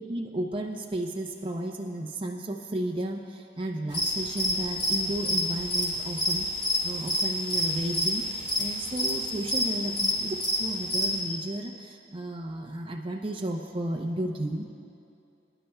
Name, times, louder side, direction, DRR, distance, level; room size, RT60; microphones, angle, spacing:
voice 1, 0.1-14.6, right 1 dB, 30° right, 0 dB, 0.7 m, -33 dB
sound 1, 3.9-11.1, left 1 dB, 35° left, 2.9 m, -27 dB
25.0 x 11.0 x 2.3 m, 2.6 s
head